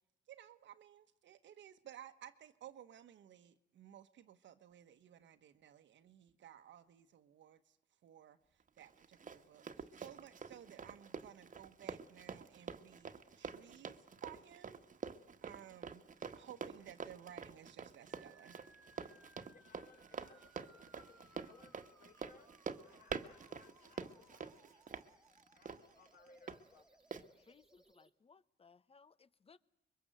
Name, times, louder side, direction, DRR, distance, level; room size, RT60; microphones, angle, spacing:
voice 1, 0.3-7.8 8.0-14.8 15.4-16.0 16.3-18.6, right 10 dB, 70° right, 1.3 m, -57 dB
Run, 8.8-26.6 27.1-27.2, right 6 dB, 40° right, 1.5 m, -47 dB
sound 1, 18.1-28.1, right 1 dB, 5° right, 2.0 m, -67 dB
voice 2, 19.5-22.5 22.8-25.1 25.5-27.5, left 3 dB, 45° left, 4.9 m, -65 dB
voice 3, 27.5-29.6, left 5 dB, 30° left, 0.9 m, -65 dB
25.5 x 22.5 x 7.8 m
cardioid pair, 90°, 20 cm